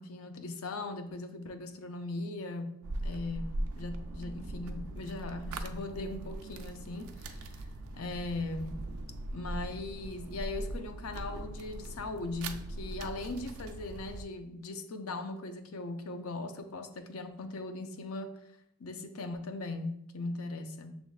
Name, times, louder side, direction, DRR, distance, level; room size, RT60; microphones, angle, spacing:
voice 1, 0.0-2.7 3.0-7.6 7.9-8.8 9.3-18.3 18.8-21.0, left 2 dB, 85° left, 7 dB, 0.5 m, -39 dB
sound 1, 2.8-14.2, right 1 dB, 85° right, 0.4 m, -40 dB
6.1 x 3.4 x 2.4 m, 0.77 s
head